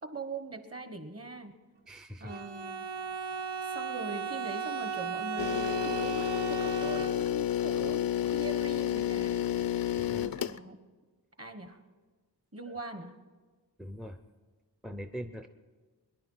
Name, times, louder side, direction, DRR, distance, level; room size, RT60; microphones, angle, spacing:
voice 1, 0.0-1.6 2.2-2.9 3.7-9.5 10.2-10.8 11.4-11.8 12.5-13.2, right 3 dB, 35° right, 8 dB, 1.4 m, -41 dB
voice 2, 1.9-2.4 10.0-10.4 13.8-14.2 14.8-15.5, equal, ahead, 8 dB, 0.6 m, -42 dB
Bowed string instrument, 2.3-7.5, right 6 dB, 80° right, 1.2 m, -36 dB
sound 1, 5.4-10.6, left 11 dB, 60° left, 0.5 m, -30 dB
22.5 x 11.0 x 5.7 m, 1.3 s
wide cardioid pair, 125°, 40 cm